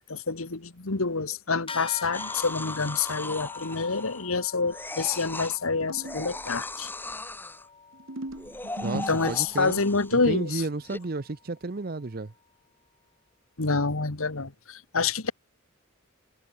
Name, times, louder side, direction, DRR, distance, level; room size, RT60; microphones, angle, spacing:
voice 1, 0.0-6.9 9.1-10.6 13.6-15.3, left 4 dB, 85° left, 1.6 m, -27 dB
sound 1, 1.7-11.5, left 5 dB, 25° left, 2.4 m, -45 dB
sound 2, 2.1-4.3 4.7-5.6 6.0-7.7 8.3-10.2 10.9-11.0, left 2 dB, 10° left, 5.1 m, -38 dB
sound 3, 5.8-6.4 7.9-9.9, right 1 dB, 70° right, 2.0 m, -38 dB
voice 2, 8.8-9.8 10.1-12.3, right 3 dB, 45° right, 0.7 m, -32 dB
head